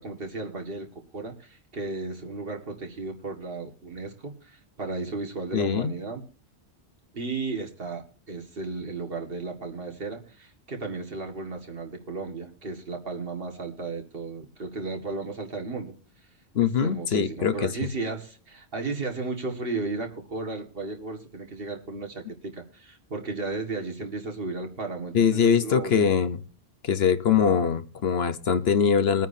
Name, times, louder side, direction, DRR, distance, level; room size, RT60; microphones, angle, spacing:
voice 1, 0.0-6.2 7.1-15.9 16.6-26.1, right 3 dB, 60° right, 2 dB, 2.1 m, -34 dB
voice 2, 5.5-5.9 16.5-17.7 25.1-26.4 26.8-29.3, left 7 dB, 70° left, 11 dB, 1.1 m, -22 dB
22.0 x 9.1 x 2.7 m, 0.39 s
omnidirectional pair, 1.1 m